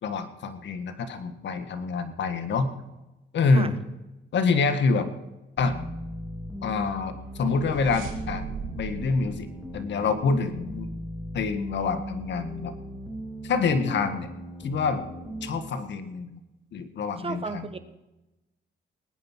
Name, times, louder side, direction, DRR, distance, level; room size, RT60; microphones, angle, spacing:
voice 1, 0.0-2.7 3.3-3.7 4.3-5.1 5.6-5.7 6.6-8.5 8.8-10.9 11.3-12.7 13.4-14.3 14.6-15.1 15.4-16.4 16.7-17.7, left 4 dB, 65° left, 9 dB, 1.8 m, -26 dB
sound 1, 5.6-15.6, equal, ahead, 3.0 m, -38 dB
sound 2, 7.0-10.7, right 5 dB, 90° right, 2.4 m, -39 dB
voice 2, 17.2-17.8, right 4 dB, 30° right, 11 dB, 1.2 m, -33 dB
20.5 x 9.5 x 4.6 m, 1.0 s
cardioid pair, 90°, 20 cm